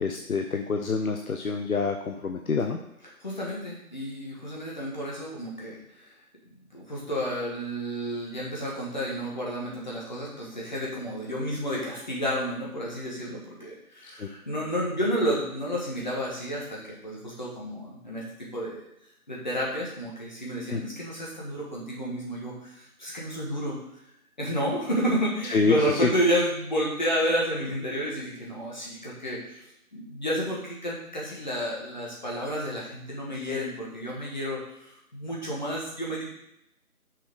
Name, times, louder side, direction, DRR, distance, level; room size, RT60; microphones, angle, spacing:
voice 1, 0.0-2.8 14.2-14.3 20.7-20.8 25.5-25.8, left 4 dB, 65° left, 4 dB, 0.7 m, -27 dB
voice 2, 3.2-5.8 6.0-6.1 6.7-18.8 19.3-23.8 24.4-29.6 29.9-36.3, equal, 30° left, -4 dB, 1.6 m, -31 dB
6.0 x 5.0 x 4.7 m, 0.80 s
figure-of-eight pair, 170°, 46 cm